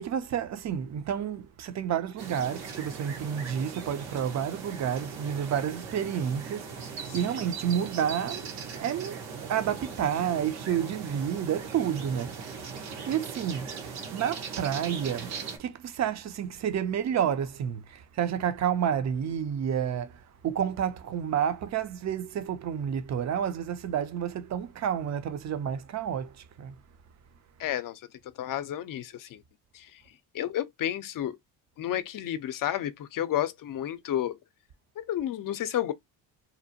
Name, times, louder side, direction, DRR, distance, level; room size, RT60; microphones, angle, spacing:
voice 1, 0.0-26.7, right 9 dB, 35° right, 0.5 m, -30 dB
sound 1, 2.2-15.6, right 5 dB, 75° right, 1.1 m, -39 dB
voice 2, 27.6-29.4 29.7-30.0 30.3-31.4 31.8-34.4 35.0-35.9, left 11 dB, 45° left, 0.6 m, -31 dB
2.8 x 2.1 x 2.7 m
supercardioid pair, 65°, 47 cm